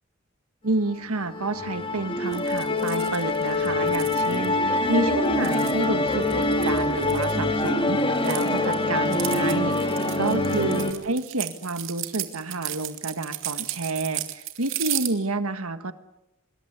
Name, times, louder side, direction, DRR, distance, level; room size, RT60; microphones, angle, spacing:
voice 1, 0.6-15.9, right 2 dB, 80° right, 10 dB, 1.6 m, -29 dB
Musical instrument, 0.8-10.9, left 2 dB, 25° left, 2.6 m, -25 dB
sound 1, 2.3-4.5 5.2-7.7 8.0-15.1, right 14 dB, 65° right, 2.6 m, -34 dB
25.5 x 22.5 x 8.1 m, 0.89 s
head